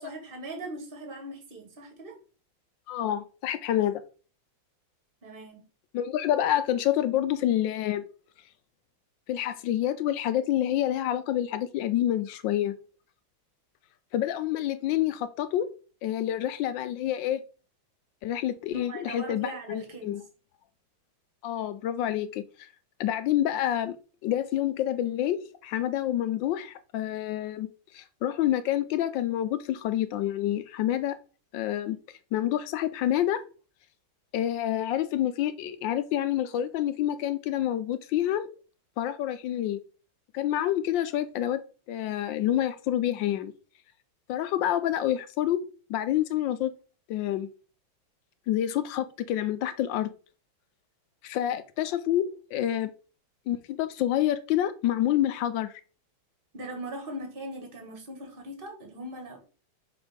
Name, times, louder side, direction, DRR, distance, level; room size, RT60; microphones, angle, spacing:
voice 1, 0.0-2.1 5.2-5.6 18.7-20.2 51.4-51.5 56.5-59.4, right 1 dB, 30° right, 1.6 m, -40 dB
voice 2, 2.9-4.0 5.9-8.0 9.3-12.7 14.1-15.7 16.0-17.4 18.2-20.2 21.4-22.4 23.0-24.0 24.2-27.7 27.9-31.2 31.5-32.0 32.3-33.4 34.3-38.5 39.0-39.8 40.3-41.6 41.9-43.5 44.3-45.6 45.9-46.7 47.1-47.5 48.5-50.1 51.2-52.9 53.5-55.7, left 12 dB, 75° left, 1.2 m, -28 dB
6.2 x 3.4 x 5.0 m
omnidirectional pair, 2.2 m